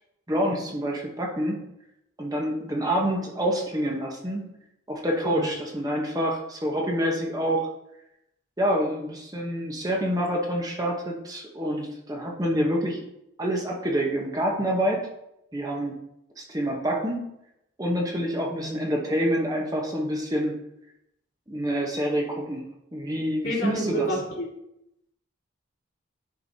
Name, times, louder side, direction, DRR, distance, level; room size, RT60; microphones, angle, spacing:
voice 1, 0.3-1.6 2.2-4.4 4.9-7.7 8.6-13.0 13.4-15.0 15.5-16.0 16.4-17.2 17.8-20.6 21.5-22.6 22.9-24.1, equal, 20° right, -1 dB, 0.9 m, -27 dB
voice 2, 23.4-24.5, equal, 80° left, -6 dB, 2.8 m, -28 dB
10.5 x 4.7 x 2.7 m, 0.83 s
head